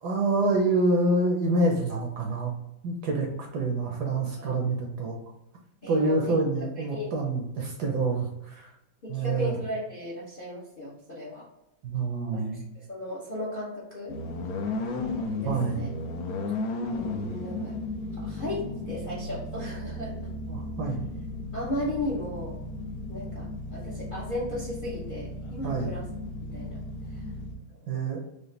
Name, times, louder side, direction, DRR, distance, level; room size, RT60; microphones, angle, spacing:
voice 1, 0.0-2.5 2.8-3.3 3.5-5.2 5.9-8.7 9.1-9.5 11.8-12.6 15.4-15.8 20.5-21.1 25.6-25.9 27.9-28.2, right 2 dB, 65° right, 1 dB, 1.1 m, -27 dB
voice 2, 5.8-6.4 6.8-7.1 9.0-11.5 12.3-14.2 15.3-15.9 16.8-17.7 18.1-20.3 21.5-22.6 23.1-26.1 26.5-26.8 27.1-27.3 27.6-27.8, left 1 dB, 50° left, -5 dB, 0.6 m, -36 dB
sound 1, 14.1-27.5, left 2 dB, 70° left, 1.0 m, -35 dB
4.9 x 2.5 x 3.2 m, 0.88 s
omnidirectional pair, 2.2 m